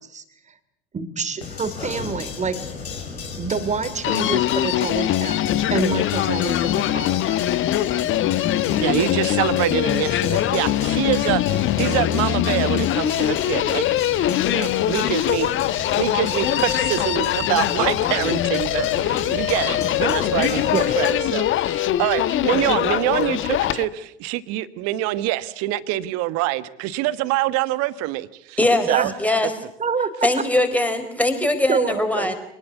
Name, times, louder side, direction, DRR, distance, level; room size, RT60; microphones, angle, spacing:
voice 1, 0.9-2.6 3.4-7.4 20.7-20.8 28.9-29.1 29.8-30.3 31.7-32.3, right 5 dB, 25° right, 12 dB, 3.0 m, -27 dB
sound 1, 1.4-21.1, left 5 dB, 80° left, 5.0 m, -33 dB
Human voice, 4.0-23.8, left 13 dB, 40° left, 1.2 m, -22 dB
voice 2, 8.8-14.0 14.3-28.6 28.9-29.1, right 16 dB, 50° right, 15 dB, 1.4 m, -25 dB
voice 3, 28.6-28.9 29.2-29.5 30.2-32.3, left 1 dB, 5° left, 7 dB, 4.4 m, -21 dB
25.5 x 19.5 x 8.3 m, 0.81 s
figure-of-eight pair, 70°, 31 cm